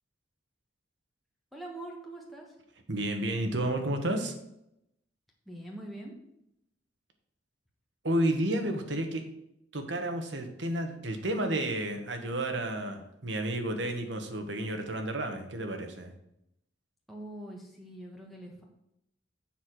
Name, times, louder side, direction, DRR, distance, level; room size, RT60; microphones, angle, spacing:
voice 1, 1.5-2.5 5.5-6.1 17.1-18.6, right 1 dB, ahead, -2 dB, 1.4 m, -43 dB
voice 2, 2.9-4.4 8.0-9.2 9.7-16.1, right 1 dB, 75° right, 5 dB, 1.4 m, -31 dB
7.5 x 5.7 x 6.3 m, 0.80 s
head